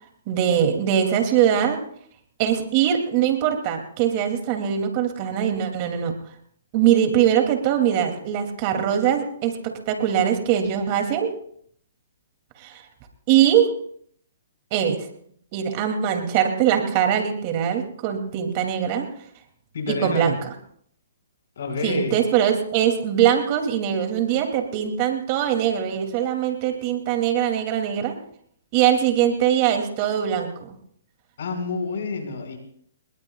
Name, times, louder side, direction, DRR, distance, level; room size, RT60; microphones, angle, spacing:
voice 1, 0.3-1.8 2.4-6.2 6.7-11.3 12.6-12.8 13.3-13.7 14.7-15.1 15.5-19.1 19.9-20.3 21.8-28.2 28.7-30.7, right 9 dB, 40° right, 5 dB, 2.7 m, -22 dB
voice 2, 19.7-20.3 21.6-22.2 31.4-32.6, left 4 dB, 65° left, 3 dB, 5.5 m, -28 dB
28.5 x 21.0 x 2.4 m, 0.64 s
hypercardioid pair, 135°, 0 cm